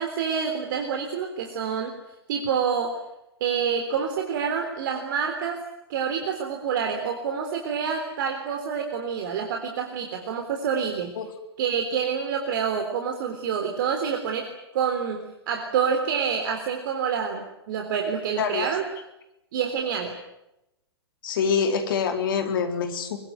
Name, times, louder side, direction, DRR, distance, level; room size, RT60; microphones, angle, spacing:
voice 1, 0.0-2.0 2.3-3.0 3.4-5.6 5.9-11.1 11.6-18.8 19.5-20.1, right 7 dB, 55° right, 4 dB, 3.6 m, -27 dB
voice 2, 18.4-18.8 21.2-23.3, left 6 dB, 55° left, 6 dB, 4.2 m, -25 dB
24.0 x 22.5 x 9.4 m, 0.90 s
figure-of-eight pair, 105°, 13 cm